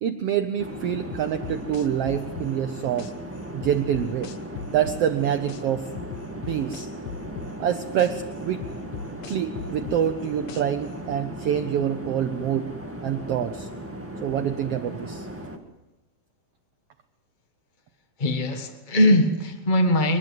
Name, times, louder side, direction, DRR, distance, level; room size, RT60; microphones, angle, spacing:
voice 1, 0.0-3.1 3.5-4.3 4.7-5.9 6.5-6.9 7.6-8.6 9.3-12.7 13.0-13.7 14.2-15.3, right 9 dB, 75° right, 8 dB, 1.4 m, -26 dB
sound 1, 0.6-15.6, right 1 dB, 10° right, 0.9 m, -37 dB
sound 2, 1.1-3.1 3.6-5.6 6.0-8.1 8.6-10.9, left 8 dB, 65° left, 2.3 m, -37 dB
voice 2, 18.2-20.2, left 1 dB, 40° left, 6 dB, 0.6 m, -21 dB
23.0 x 21.0 x 7.9 m, 1.0 s
omnidirectional pair, 3.9 m